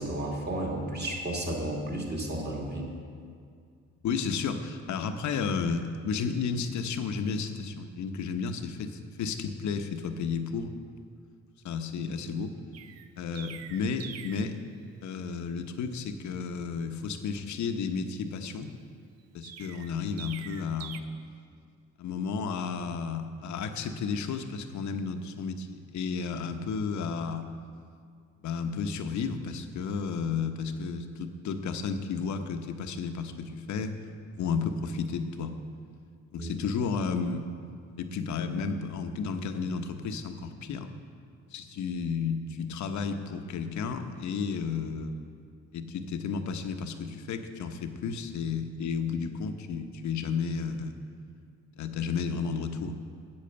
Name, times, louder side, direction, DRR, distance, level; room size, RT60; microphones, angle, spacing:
voice 1, 0.0-2.9 36.4-36.5, right 1 dB, 35° right, -1 dB, 2.4 m, -32 dB
voice 2, 4.0-10.7 11.6-12.5 13.2-14.6 15.0-18.7 19.3-21.0 22.0-27.5 28.4-33.9 34.3-35.5 36.3-37.5 38.0-40.9 41.5-45.1 45.7-51.0 51.8-53.0, left 5 dB, 70° left, 7 dB, 0.9 m, -32 dB
Chirp tweet, 12.7-14.5 19.4-21.0, right 9 dB, 55° right, 0.6 m, -44 dB
8.6 x 8.2 x 6.8 m, 2.2 s
cardioid pair, 90°, 30 cm